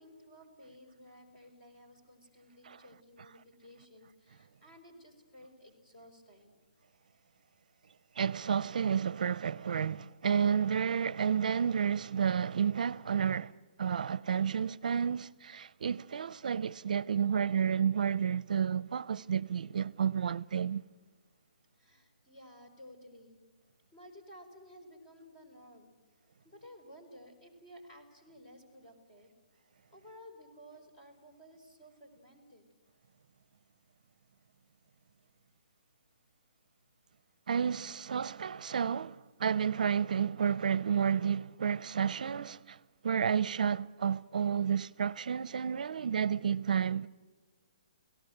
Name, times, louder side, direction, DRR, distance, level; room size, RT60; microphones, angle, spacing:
voice 1, 0.0-6.5 21.8-23.4 23.9-25.9 26.4-29.3 29.9-32.6, equal, 20° left, 5.0 m, -55 dB
voice 2, 8.2-13.5 13.8-20.8 37.5-42.8 43.0-47.1, right 7 dB, 65° right, 0.6 m, -31 dB
29.5 x 18.0 x 7.9 m
hypercardioid pair, 170°, 5 cm